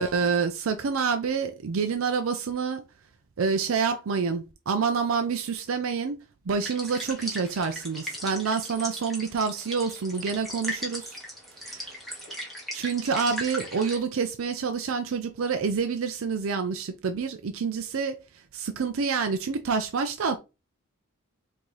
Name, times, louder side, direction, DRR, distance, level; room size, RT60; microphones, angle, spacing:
voice 1, 0.0-2.8 3.4-6.2 6.5-11.2 11.6-11.9 12.7-20.4, right 5 dB, 70° right, 0.5 m, -27 dB
sound 1, 6.6-14.0, equal, ahead, 1.3 m, -38 dB
3.8 x 2.7 x 4.6 m
head